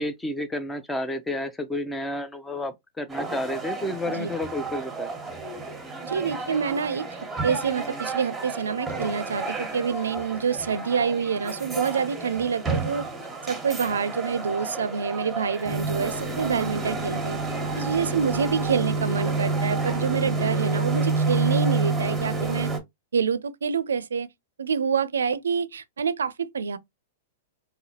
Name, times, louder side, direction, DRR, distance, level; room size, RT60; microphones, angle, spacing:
voice 1, 0.0-5.1, left 1 dB, 10° left, 0.6 m, -31 dB
sound 1, 3.1-22.8, right 3 dB, 5° right, 1.2 m, -29 dB
voice 2, 6.0-7.2 7.4-13.1 13.4-17.4 17.7-22.7 23.1-24.3 24.6-26.8, right 6 dB, 90° right, 0.4 m, -27 dB
4.0 x 2.6 x 2.9 m
hypercardioid pair, 120°, 0 cm